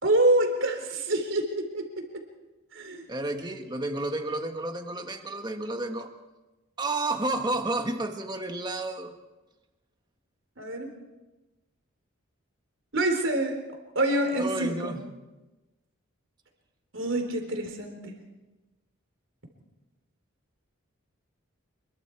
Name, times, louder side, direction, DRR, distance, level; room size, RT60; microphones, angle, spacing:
voice 1, 0.0-1.8 2.7-3.0 10.6-10.9 12.9-13.6 14.0-15.0 16.9-18.2, right 1 dB, 60° right, 4 dB, 3.8 m, -26 dB
voice 2, 3.1-6.1 6.8-9.1 14.4-15.0, right 2 dB, 20° right, 6 dB, 1.5 m, -31 dB
27.5 x 22.0 x 4.7 m, 1.1 s
head